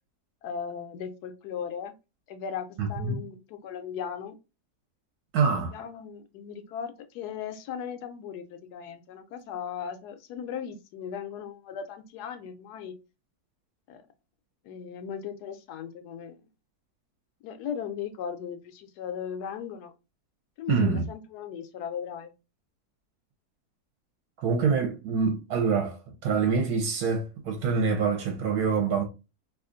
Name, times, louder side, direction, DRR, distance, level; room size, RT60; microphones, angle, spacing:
voice 1, 0.4-1.9 2.3-4.4 5.7-13.0 13.9-14.0 14.6-16.4 17.4-19.9 20.6-22.3, left 7 dB, 85° left, 1.2 m, -37 dB
voice 2, 2.8-3.2 5.3-5.8 20.7-21.0 24.4-29.1, right 5 dB, 75° right, 1.2 m, -26 dB
3.0 x 2.4 x 3.7 m
omnidirectional pair, 1.7 m